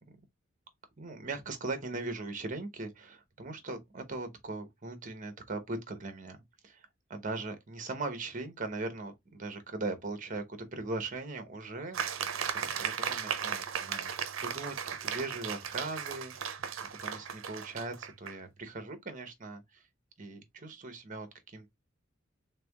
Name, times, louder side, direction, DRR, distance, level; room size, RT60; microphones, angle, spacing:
voice 1, 1.0-6.4 6.6-12.2 12.5-14.1 14.4-16.6 17.0-19.8 20.2-21.7, right 3 dB, 40° right, 1.0 m, -40 dB
sound 1, 11.9-18.4, right 7 dB, 85° right, 0.6 m, -36 dB
3.6 x 3.4 x 3.4 m
head